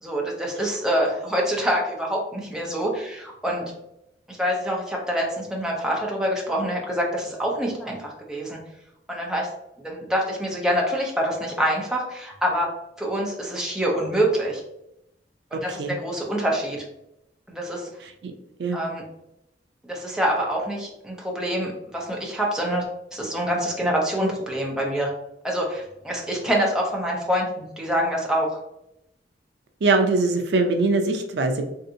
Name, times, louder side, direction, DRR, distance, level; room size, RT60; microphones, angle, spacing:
voice 1, 0.0-3.7 4.3-8.6 9.1-9.5 9.8-12.7 13.0-14.6 15.5-16.8 17.5-17.9 18.7-19.0 19.9-22.9 23.1-25.1 25.4-28.6, equal, 5° right, -2 dB, 0.6 m, -26 dB
voice 2, 18.0-18.3 18.6-18.8 29.8-31.6, right 3 dB, 70° right, 5 dB, 0.4 m, -22 dB
3.2 x 2.7 x 2.6 m, 0.83 s
head